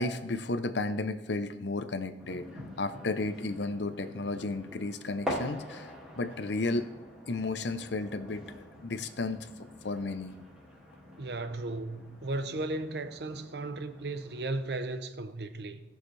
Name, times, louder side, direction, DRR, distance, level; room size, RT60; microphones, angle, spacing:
voice 1, 0.0-2.5 2.8-6.9 7.3-9.4 9.8-10.3, left 2 dB, 80° left, 0.7 m, -33 dB
sound 1, 2.2-14.6, equal, 5° right, 2.2 m, -44 dB
voice 2, 11.2-15.8, right 2 dB, 65° right, 0.7 m, -35 dB
18.0 x 6.5 x 3.3 m
head